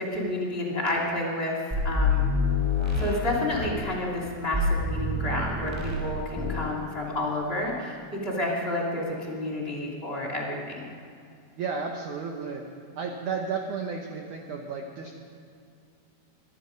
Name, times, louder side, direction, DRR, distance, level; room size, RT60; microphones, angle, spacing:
voice 1, 0.0-2.3 3.0-8.0 8.2-10.9, left 1 dB, 15° left, -3 dB, 2.3 m, -30 dB
sound 1, 1.7-3.9 4.5-6.1 6.4-6.7, left 3 dB, 5° right, 4.7 m, -26 dB
voice 2, 11.6-12.6 13.0-15.1, right 5 dB, 80° right, 2 dB, 1.8 m, -33 dB
23.0 x 12.0 x 5.2 m, 2.4 s
omnidirectional pair, 5.1 m